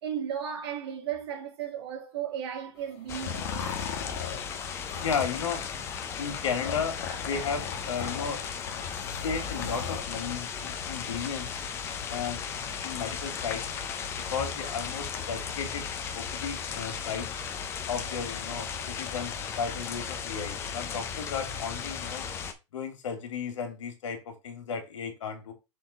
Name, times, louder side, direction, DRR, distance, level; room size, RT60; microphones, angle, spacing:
voice 1, 0.0-3.7 12.9-13.0 14.0-14.4, right 9 dB, 55° right, 2.0 m, -35 dB
sound 1, 2.8-10.0, left 7 dB, 40° left, 1.7 m, -38 dB
sound 2, 3.1-22.5, left 7 dB, 15° left, 0.7 m, -36 dB
voice 2, 5.0-5.6 6.2-8.4 9.2-11.6 12.1-12.4 12.8-13.6 14.3-15.9 16.1-17.3 17.9-22.3 22.7-25.5, left 6 dB, 75° left, 2.6 m, -34 dB
6.8 x 3.7 x 4.4 m
supercardioid pair, 165°, 16 cm